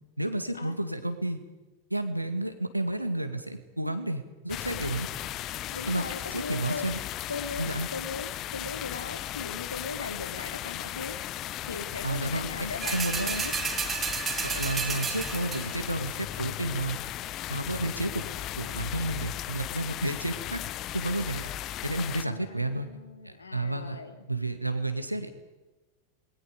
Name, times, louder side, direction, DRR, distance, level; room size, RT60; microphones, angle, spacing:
voice 1, 0.2-1.4 1.9-5.1 5.9-6.0 6.3-7.0 7.6-7.9 12.0-12.5 12.9-13.4 14.4-16.1 16.4-17.0 17.5-18.3 18.6-20.6 20.9-21.5 21.8-22.9 23.2-24.0 24.3-25.3, right 1 dB, 85° right, 8 dB, 2.1 m, -31 dB
sound 1, 4.5-22.2, left 13 dB, 35° left, 0.8 m, -36 dB
voice 2, 5.7-6.9 7.3-11.2 11.6-13.5 18.9-19.0 22.2-24.3, left 4 dB, 75° left, 9 dB, 2.3 m, -39 dB
sound 2, 12.8-15.9 16.3-16.4, right 6 dB, 20° right, 2.4 m, -32 dB
28.0 x 21.0 x 5.2 m, 1.2 s
figure-of-eight pair, 90°, 0 cm